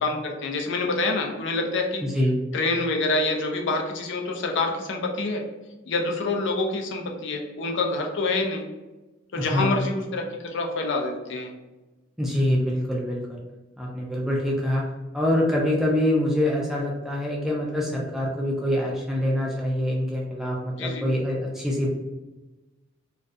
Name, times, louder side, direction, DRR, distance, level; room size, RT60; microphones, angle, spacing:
voice 1, 0.0-2.0 2.5-5.4 5.9-8.6 9.3-11.5 20.8-21.1, left 2 dB, 65° left, 2 dB, 0.4 m, -26 dB
voice 2, 2.0-2.4 9.4-9.8 12.2-13.4 13.8-14.9 15.1-21.9, left 1 dB, ahead, -3 dB, 0.3 m, -25 dB
2.3 x 2.2 x 2.5 m, 1.1 s
head